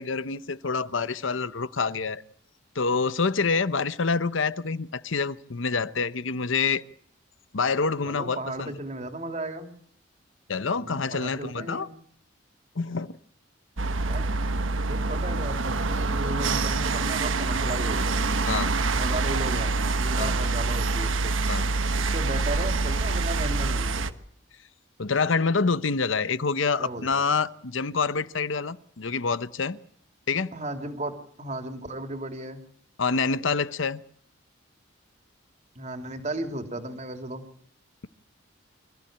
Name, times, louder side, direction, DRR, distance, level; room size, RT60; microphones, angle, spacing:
voice 1, 0.0-2.2 2.7-6.8 7.5-8.7 10.5-11.9 12.8-13.1 18.5-18.7 20.2-20.4 21.5-21.7 25.0-29.8 30.3-30.5 33.0-34.0, left 4 dB, 75° left, 0.9 m, -27 dB
voice 2, 8.0-9.7 10.8-11.9 14.0-14.3 14.8-18.3 18.9-21.3 22.0-24.1 26.8-27.2 30.5-32.6 35.7-37.5, right 1 dB, 35° right, 2.9 m, -35 dB
sound 1, 13.8-24.1, right 3 dB, 80° right, 1.3 m, -26 dB
25.5 x 15.0 x 8.8 m
head